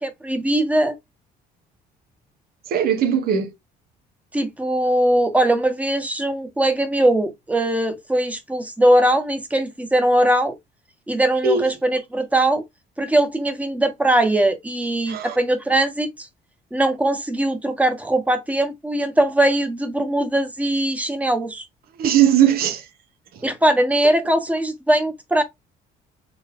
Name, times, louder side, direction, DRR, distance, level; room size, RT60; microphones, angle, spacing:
voice 1, 0.0-1.0 4.3-10.6 11.1-12.6 13.0-16.3 16.7-21.7 23.4-25.4, right 1 dB, 10° right, 1.0 m, -20 dB
voice 2, 2.7-3.5 11.4-11.7 15.1-15.4 22.0-22.9 23.3-23.4, right 9 dB, 65° right, 0.7 m, -19 dB
3.8 x 3.2 x 2.8 m
cardioid pair, 110°, 17 cm